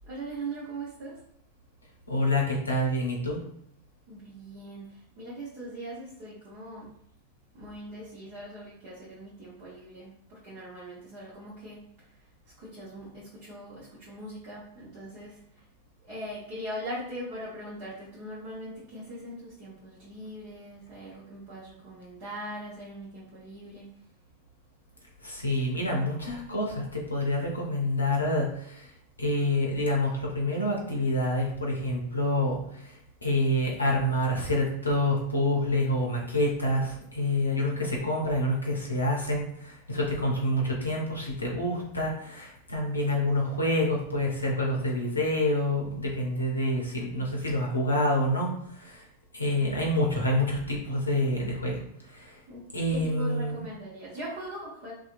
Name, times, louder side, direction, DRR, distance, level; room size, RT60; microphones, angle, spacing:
voice 1, 0.1-1.2 4.1-6.9 7.5-11.8 12.6-15.4 16.1-23.9 52.5-52.6 52.9-54.9, right 1 dB, 40° right, -8 dB, 0.9 m, -40 dB
voice 2, 2.1-3.4 25.2-28.9 29.2-49.1 49.3-51.8 52.1-52.4 52.7-53.6, left 1 dB, 80° left, -1 dB, 0.6 m, -27 dB
2.7 x 2.3 x 2.5 m, 0.72 s
figure-of-eight pair, 90°, 0 cm